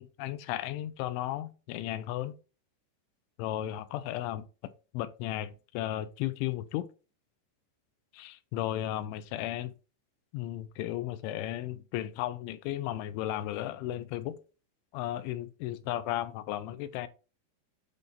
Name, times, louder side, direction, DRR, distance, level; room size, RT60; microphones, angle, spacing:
voice 1, 0.0-2.3 3.4-4.5 4.9-6.9 8.1-9.7 10.3-14.4 14.9-17.1, left 13 dB, 85° left, 3.0 m, -34 dB
9.1 x 4.0 x 3.9 m
omnidirectional pair, 5.2 m